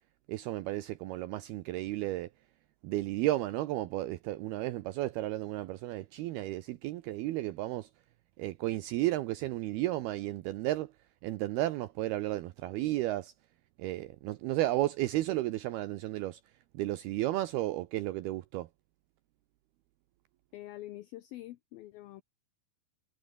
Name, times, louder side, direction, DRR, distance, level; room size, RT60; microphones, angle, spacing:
voice 1, 0.3-2.3 2.8-7.9 8.4-10.9 11.2-13.3 13.8-16.4 16.7-18.7, right 16 dB, 80° right, 2.3 m, -33 dB
voice 2, 20.5-22.2, left 15 dB, 85° left, 2.1 m, -45 dB
omnidirectional pair, 5.4 m